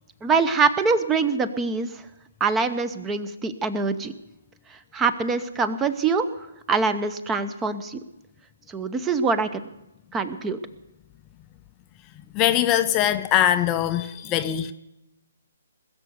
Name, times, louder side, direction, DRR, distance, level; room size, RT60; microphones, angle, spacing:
voice 1, 0.2-2.0 2.4-4.1 4.7-8.0 8.7-9.6 10.1-10.6, right 4 dB, 15° right, 0.7 m, -24 dB
voice 2, 12.3-14.7, left 11 dB, 20° left, 0.5 m, -22 dB
20.5 x 6.9 x 8.0 m
figure-of-eight pair, 135°, 0 cm